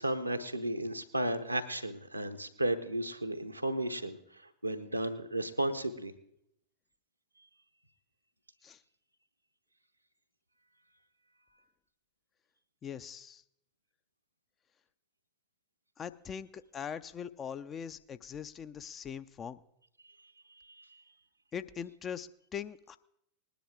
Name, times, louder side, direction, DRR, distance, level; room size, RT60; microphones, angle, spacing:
voice 1, 0.0-4.2 4.6-6.1 20.8-20.9, right 1 dB, 85° right, 7 dB, 0.8 m, -33 dB
voice 2, 12.8-13.4 16.0-19.6 21.5-23.0, left 7 dB, 25° left, 13 dB, 0.5 m, -41 dB
19.5 x 10.0 x 3.7 m, 0.76 s
figure-of-eight pair, 90°, 0 cm